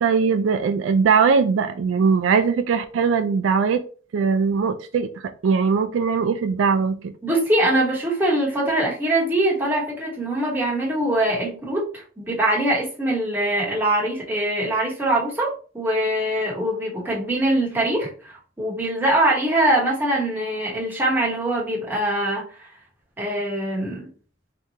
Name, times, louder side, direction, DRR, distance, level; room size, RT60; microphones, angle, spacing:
voice 1, 0.0-3.8 4.1-7.1, right 5 dB, 75° right, 0.3 m, -20 dB
voice 2, 7.2-22.7 23.2-24.1, right 1 dB, 10° right, 1.0 m, -23 dB
3.6 x 2.9 x 2.7 m
head